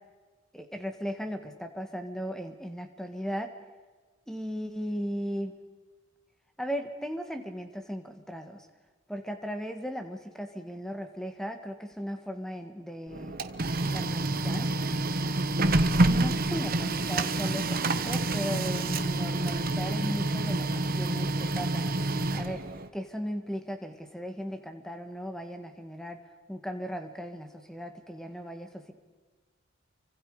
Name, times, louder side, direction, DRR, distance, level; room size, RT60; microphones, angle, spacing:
voice 1, 0.5-3.5 4.3-5.5 6.6-8.7 9.1-13.4 13.9-14.7 16.1-20.7 20.9-21.9 22.3-22.7 22.9-26.2 26.5-28.9, equal, ahead, 6 dB, 1.8 m, -37 dB
Printer, 13.1-22.9, right 2 dB, 45° right, 1.2 m, -28 dB
29.5 x 25.0 x 5.0 m, 1.4 s
head